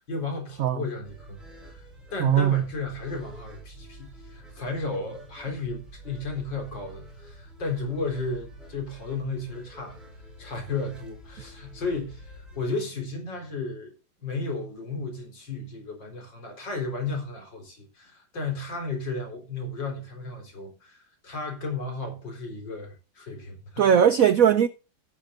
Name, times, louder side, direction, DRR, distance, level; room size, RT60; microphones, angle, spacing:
voice 1, 0.1-10.0 10.4-13.9 14.2-23.9, left 3 dB, 60° left, 4.7 m, -34 dB
sound 1, 1.0-12.6, right 1 dB, ahead, 6.6 m, -48 dB
voice 2, 2.2-2.6 23.8-24.7, right 9 dB, 80° right, 0.7 m, -19 dB
17.0 x 9.6 x 2.5 m
omnidirectional pair, 2.3 m